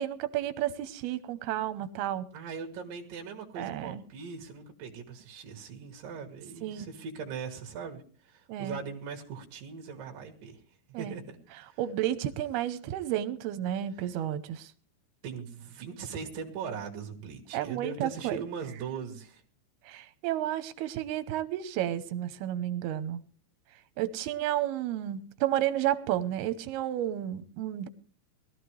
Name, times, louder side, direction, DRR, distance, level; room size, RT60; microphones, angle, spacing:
voice 1, 0.0-2.3 3.6-4.0 6.6-6.9 8.5-8.8 10.9-11.2 11.8-14.7 17.5-18.4 19.9-23.2 24.0-27.9, right 12 dB, 85° right, 13 dB, 2.9 m, -31 dB
voice 2, 2.3-10.6 11.0-11.8 15.2-19.4, right 6 dB, 65° right, 1 dB, 3.2 m, -40 dB
20.5 x 13.5 x 3.2 m, 0.42 s
omnidirectional pair, 4.4 m